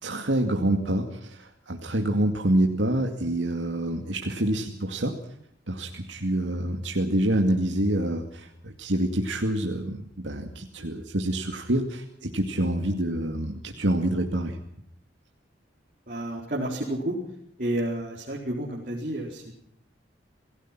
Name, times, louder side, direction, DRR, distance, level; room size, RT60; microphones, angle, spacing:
voice 1, 0.0-5.1 5.7-14.6, right 1 dB, 85° right, 2 dB, 2.3 m, -27 dB
voice 2, 16.1-17.2 17.6-19.5, right 1 dB, 50° right, -2 dB, 4.4 m, -30 dB
28.0 x 17.5 x 6.1 m, 0.71 s
head